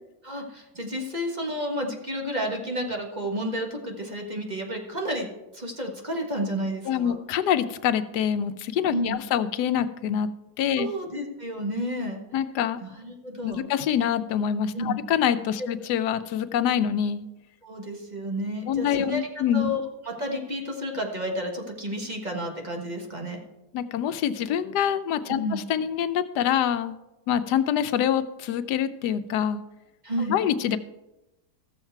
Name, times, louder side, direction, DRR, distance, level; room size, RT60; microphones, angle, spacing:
voice 1, 0.2-5.3 5.5-7.2 8.9-9.2 10.8-12.2 12.8-13.7 14.7-15.0 15.6-15.7 17.6-19.3 19.5-19.8 20.0-23.4 25.3-25.6 30.0-30.4, equal, 30° right, 1 dB, 1.4 m, -31 dB
voice 2, 6.9-10.3 10.6-10.9 12.3-12.8 13.4-17.2 18.7-19.7 23.7-27.0 27.3-29.6 30.3-30.8, left 9 dB, 85° left, 12 dB, 1.2 m, -25 dB
14.5 x 7.3 x 4.5 m, 0.98 s
omnidirectional pair, 1.7 m